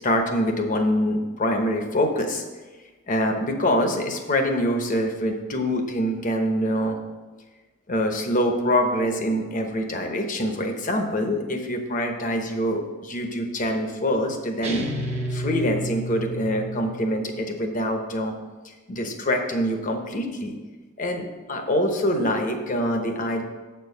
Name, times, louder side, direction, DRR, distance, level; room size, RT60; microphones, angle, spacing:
voice 1, 0.0-2.4 3.1-7.0 7.9-14.9 15.3-18.3 18.9-20.5 21.0-23.4, equal, 40° left, 4 dB, 1.0 m, -25 dB
sound 1, 14.6-17.2, right 1 dB, 35° right, 1.2 m, -30 dB
7.8 x 4.6 x 6.6 m, 1.3 s
head